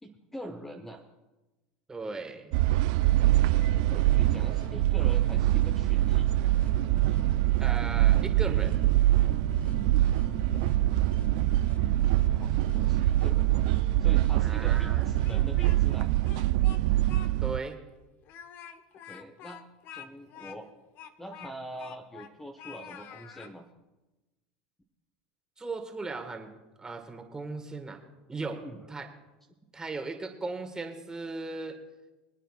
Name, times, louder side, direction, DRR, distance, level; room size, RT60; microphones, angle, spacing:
voice 1, 0.0-1.0 3.9-6.3 12.4-13.6 14.0-16.1 19.0-19.6 19.9-20.7 21.2-23.6 28.6-28.8, equal, 10° left, 4 dB, 1.0 m, -43 dB
voice 2, 1.9-2.5 7.6-8.8 14.4-15.1 17.4-17.8 25.6-26.5 26.8-28.0 28.3-29.1 29.7-31.8, right 3 dB, 15° right, 4 dB, 1.7 m, -37 dB
sound 1, 2.5-17.6, right 16 dB, 70° right, 0.3 m, -24 dB
sound 2, 3.5-15.7, left 7 dB, 30° left, 0.5 m, -43 dB
Speech, 15.0-16.0 16.3-17.3 17.6-17.7 18.2-22.3 22.6-23.5, left 9 dB, 50° left, 0.9 m, -47 dB
25.0 x 9.1 x 2.4 m, 1.1 s
supercardioid pair, 105°, 4 cm